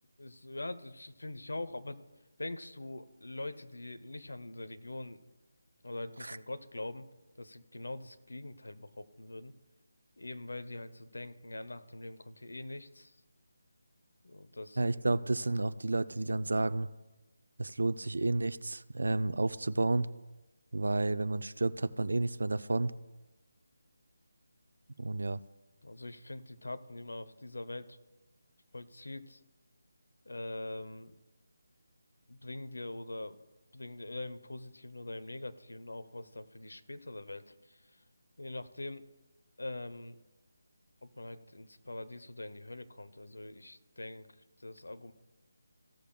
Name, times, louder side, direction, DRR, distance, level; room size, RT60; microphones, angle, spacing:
voice 1, 0.2-2.0 2.4-5.2 5.8-7.1 7.3-9.5 10.2-13.2 14.2-15.1 25.8-28.0 28.7-29.4 30.2-31.2 32.3-33.4 33.7-38.0 38.4-39.1 39.6-40.2 41.0-45.1, left 2 dB, 75° left, 10 dB, 0.8 m, -43 dB
voice 2, 14.8-16.9 17.6-20.1 20.7-22.9 25.0-25.4, right 2 dB, 70° right, 15 dB, 0.4 m, -31 dB
15.5 x 7.4 x 2.3 m, 1.1 s
figure-of-eight pair, 155°, 0 cm